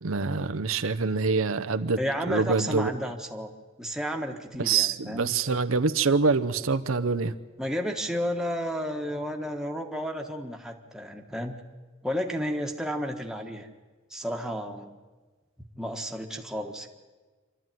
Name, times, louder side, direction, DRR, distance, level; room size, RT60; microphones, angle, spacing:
voice 1, 0.0-2.0 2.3-2.9 4.6-7.3, right 4 dB, 80° right, 10 dB, 0.8 m, -25 dB
voice 2, 2.0-3.5 3.8-5.3 7.6-11.6 12.0-13.7 14.1-15.0 15.8-16.9, equal, 5° right, 2 dB, 1.4 m, -32 dB
26.5 x 13.0 x 9.2 m, 1.4 s
head